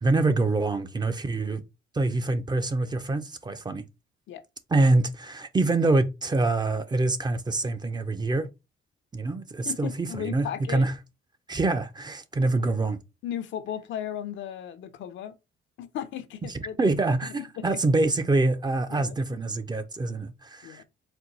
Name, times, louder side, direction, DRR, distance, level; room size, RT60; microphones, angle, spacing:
voice 1, 0.0-1.6 1.9-3.8 4.7-8.5 9.1-10.9 11.5-13.0 16.8-20.8, right 2 dB, 20° right, 0.5 m, -25 dB
voice 2, 9.7-10.9 13.2-15.4 15.8-16.9 17.4-17.8 18.9-19.2 20.6-20.8, left 10 dB, 70° left, 0.6 m, -36 dB
4.4 x 2.2 x 3.9 m
cardioid pair, 105°, 20 cm